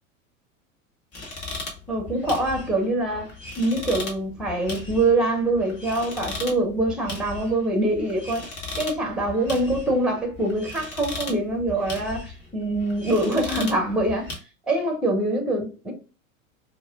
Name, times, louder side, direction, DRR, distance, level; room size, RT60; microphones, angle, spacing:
sound 1, 1.1-14.4, left 3 dB, 35° left, 1.3 m, -37 dB
voice 1, 1.9-8.4 8.8-14.3 14.7-15.9, right 2 dB, ahead, 0.8 m, -24 dB
4.5 x 2.2 x 2.3 m
figure-of-eight pair, 85°, 40 cm